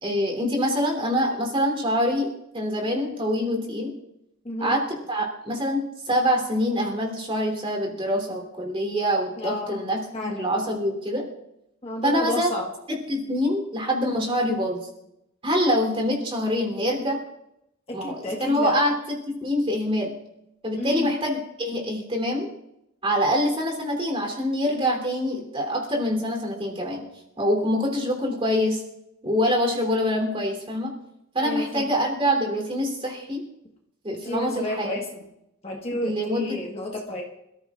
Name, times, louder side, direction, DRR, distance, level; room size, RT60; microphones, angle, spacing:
voice 1, 0.0-3.9 4.6-11.2 12.0-12.5 13.1-14.9 15.4-17.2 17.9-18.9 19.3-20.1 20.6-22.5 23.0-27.0 27.4-28.8 29.2-30.9 31.3-33.4 34.0-35.0 36.0-36.6, equal, 25° right, 1 dB, 3.4 m, -25 dB
voice 2, 4.4-4.8 9.4-9.9 10.1-10.7 11.8-12.7 17.9-18.7 20.8-21.1 31.4-31.9 34.2-35.2 35.6-37.2, left 1 dB, 30° left, -1 dB, 1.5 m, -31 dB
27.5 x 14.5 x 2.5 m, 0.84 s
head